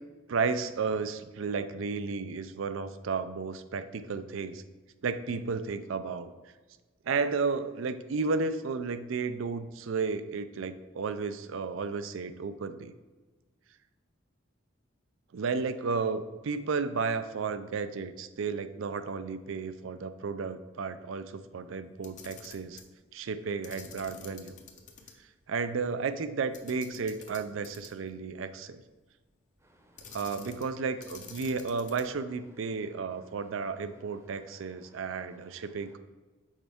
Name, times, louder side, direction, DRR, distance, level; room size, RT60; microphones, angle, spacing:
voice 1, 0.3-4.6 5.0-6.3 7.1-12.9 15.3-22.8 23.1-24.6 25.5-28.8 30.1-36.0, right 4 dB, 75° right, 12 dB, 0.4 m, -33 dB
Camera, 21.9-22.9 23.6-25.1 25.5-25.6 26.5-28.1 30.0-30.7 31.0-32.2, left 5 dB, 40° left, 0.7 m, -49 dB
voice 2, 29.6-30.2 34.4-36.0, right 1 dB, 15° right, 3 dB, 0.7 m, -64 dB
6.3 x 4.6 x 3.5 m, 1.3 s
head